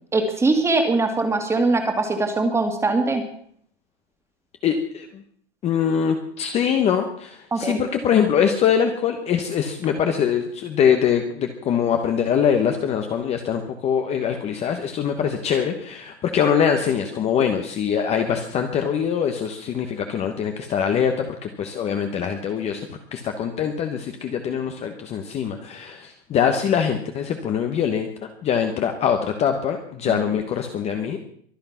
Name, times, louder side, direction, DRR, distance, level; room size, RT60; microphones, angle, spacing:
voice 1, 0.1-3.2 7.5-7.8 30.1-30.2, right 3 dB, 10° right, 5 dB, 2.1 m, -21 dB
voice 2, 4.6-5.1 5.6-31.3, left 8 dB, 20° left, 5 dB, 1.2 m, -23 dB
23.5 x 8.7 x 5.8 m, 0.62 s
hypercardioid pair, 155°, 33 cm